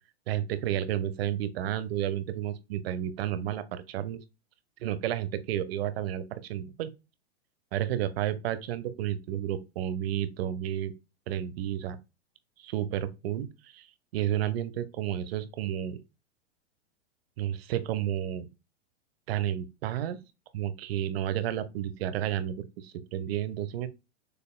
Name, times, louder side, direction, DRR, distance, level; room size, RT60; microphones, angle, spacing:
voice 1, 0.3-4.2 4.8-6.9 7.7-10.9 11.3-12.0 12.6-13.9 14.1-16.0 17.4-18.5 19.3-20.2 20.5-23.9, right 11 dB, 60° right, 0.9 m, -31 dB
6.9 x 3.4 x 2.3 m
hypercardioid pair, 125°, 35 cm